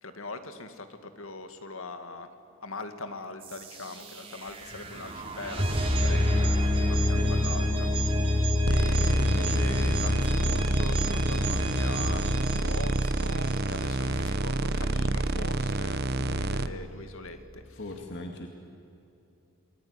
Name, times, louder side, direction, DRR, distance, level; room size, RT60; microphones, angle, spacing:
voice 1, 0.0-2.3 2.6-8.1 8.6-17.8, left 2 dB, 75° left, 9 dB, 2.2 m, -42 dB
sound 1, 3.4-14.2, left 1 dB, 25° right, 2.9 m, -28 dB
voice 2, 6.2-6.5 7.0-7.4 17.7-18.5, left 1 dB, 55° left, 3 dB, 2.2 m, -40 dB
sound 2, 8.7-16.7, right 2 dB, 50° right, 1.0 m, -28 dB
29.0 x 20.5 x 9.8 m, 2.7 s
head